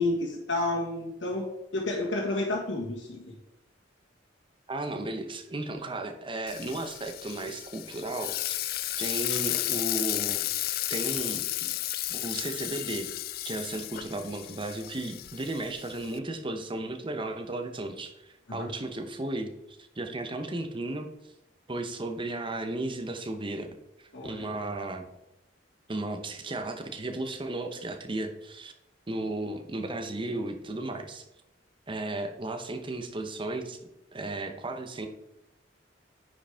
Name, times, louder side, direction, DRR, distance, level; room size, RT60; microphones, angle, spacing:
voice 1, 0.0-3.3 9.3-9.4 18.5-18.7 24.1-24.4, left 2 dB, 85° left, -1 dB, 1.7 m, -30 dB
voice 2, 4.7-11.7 12.1-13.1 13.4-19.5 19.8-21.1 21.7-23.7 24.0-25.1 25.9-28.7 29.1-31.2 31.9-33.8 34.1-35.1, right 2 dB, 30° right, 6 dB, 0.8 m, -35 dB
Frying (food), 6.5-16.2, left 16 dB, 55° left, 0.3 m, -33 dB
9.4 x 5.2 x 3.5 m, 0.86 s
head